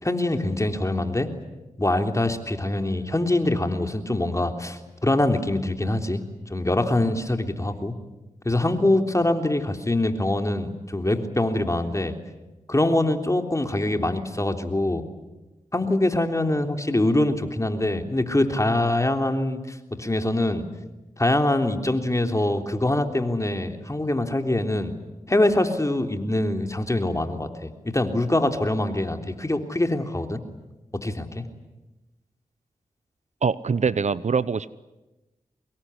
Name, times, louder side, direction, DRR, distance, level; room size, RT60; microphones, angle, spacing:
voice 1, 0.0-1.3 1.8-6.2 6.5-7.9 8.5-12.1 12.7-15.0 15.7-20.6 21.2-24.9 25.3-30.4 31.0-31.4, left 1 dB, 25° left, 6 dB, 3.4 m, -24 dB
voice 2, 33.4-34.7, right 5 dB, 60° right, 17 dB, 0.8 m, -23 dB
25.0 x 21.5 x 9.9 m, 1.0 s
cardioid pair, 45°, 13 cm